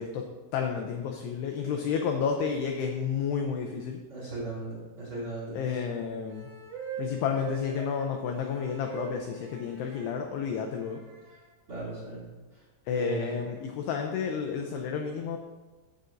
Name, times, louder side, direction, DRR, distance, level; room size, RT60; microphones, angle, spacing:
voice 1, 0.0-4.0 5.5-6.5 7.0-11.0 12.9-15.4, left 6 dB, 85° left, 3 dB, 2.4 m, -31 dB
voice 2, 4.1-5.6 11.7-12.2 12.9-13.4, right 2 dB, 45° right, -8 dB, 1.8 m, -36 dB
sound 1, 6.3-10.1 10.9-11.5, right 6 dB, 80° right, 1.8 m, -41 dB
14.5 x 6.9 x 2.5 m, 1.2 s
omnidirectional pair, 5.5 m